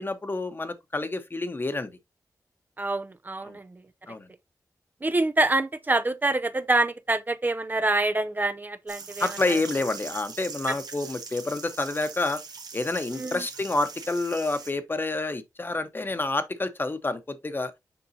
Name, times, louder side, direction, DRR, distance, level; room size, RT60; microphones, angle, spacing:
voice 1, 0.0-1.9 3.4-3.6 4.1-4.3 9.2-12.4 12.7-17.7, left 2 dB, 30° left, 1.0 m, -28 dB
voice 2, 2.8-3.8 5.0-9.3 13.2-13.4, right 2 dB, 30° right, 0.5 m, -26 dB
sound 1, 8.9-14.7, right 5 dB, 90° right, 1.4 m, -41 dB
6.9 x 5.3 x 2.7 m
wide cardioid pair, 95°, 7 cm